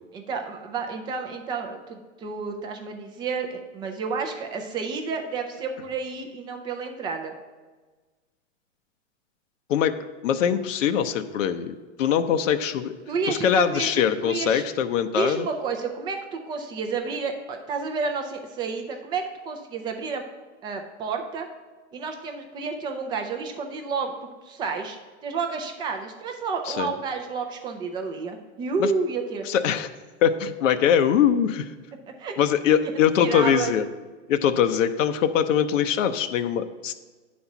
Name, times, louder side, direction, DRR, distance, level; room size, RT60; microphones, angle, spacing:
voice 1, 0.1-7.3 13.1-14.7 15.1-20.2 20.6-21.5 21.9-24.1 24.4-25.0 25.2-29.4 32.2-32.3 33.2-33.7, right 5 dB, 15° right, 4 dB, 0.3 m, -30 dB
voice 2, 10.2-12.9 13.3-15.5 26.7-26.9 28.8-28.9 29.5-29.9 30.2-31.7 32.4-33.9 34.3-36.9, left 8 dB, 85° left, 8 dB, 0.7 m, -22 dB
9.4 x 4.2 x 5.8 m, 1.3 s
hypercardioid pair, 140°, 37 cm